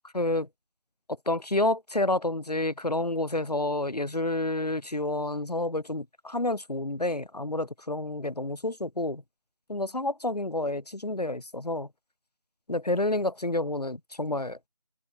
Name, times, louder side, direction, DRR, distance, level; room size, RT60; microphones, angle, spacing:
voice 1, 0.1-0.5 1.3-9.2 9.7-11.9 12.7-14.6, left 2 dB, 80° left, 1.9 m, -29 dB
figure-of-eight pair, 165°, 20 cm